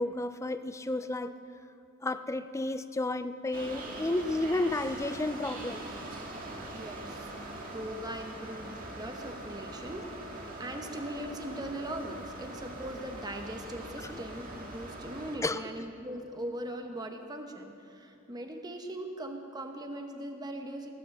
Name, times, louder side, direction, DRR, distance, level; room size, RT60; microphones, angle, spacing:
voice 1, 0.0-1.3 2.0-6.0 15.4-15.6, left 2 dB, 15° left, 11 dB, 0.4 m, -32 dB
sound 1, 3.5-15.4, right 1 dB, 45° right, 1.9 m, -42 dB
voice 2, 6.6-20.9, right 1 dB, 20° right, 4 dB, 0.9 m, -40 dB
18.5 x 7.5 x 7.6 m, 2.7 s
head